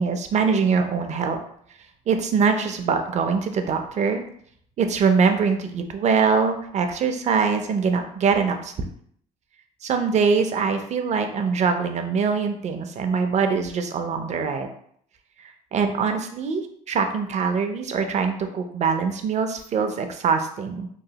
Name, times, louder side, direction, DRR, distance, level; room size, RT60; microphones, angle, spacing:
voice 1, 0.0-1.4 2.1-4.2 4.8-8.9 9.8-14.7 15.4-20.9, right 5 dB, 45° right, 6 dB, 0.4 m, -23 dB
3.0 x 2.2 x 2.8 m, 0.65 s
cardioid pair, 110°, 17 cm